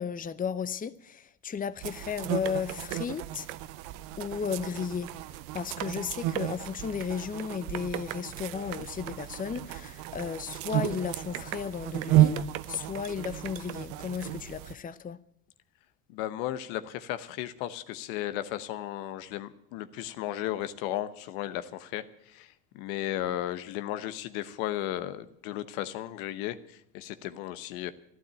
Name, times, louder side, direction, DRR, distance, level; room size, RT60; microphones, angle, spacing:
voice 1, 0.0-3.5 4.2-15.2, left 6 dB, 20° left, 0.7 m, -34 dB
sound 1, 1.8-14.7, right 14 dB, 75° right, 0.8 m, -32 dB
voice 2, 16.1-27.9, left 13 dB, 75° left, 1.0 m, -35 dB
12.0 x 12.0 x 8.9 m
hypercardioid pair, 75°, 41 cm